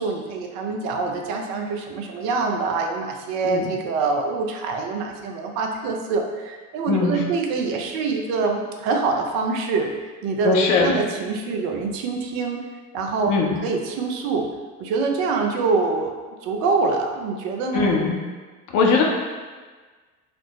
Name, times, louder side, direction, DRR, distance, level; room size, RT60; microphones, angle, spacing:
voice 1, 0.0-9.9 10.2-10.5 10.8-12.6 12.9-13.3 13.6-14.5 14.8-16.2 16.4-17.9, right 4 dB, 50° right, 3 dB, 0.6 m, -25 dB
voice 2, 6.9-7.2 10.4-10.9 13.3-13.6 17.7-18.2 18.7-19.0, left 4 dB, 45° left, 0 dB, 0.7 m, -20 dB
4.2 x 2.0 x 3.0 m, 1.4 s
figure-of-eight pair, 60°, 44 cm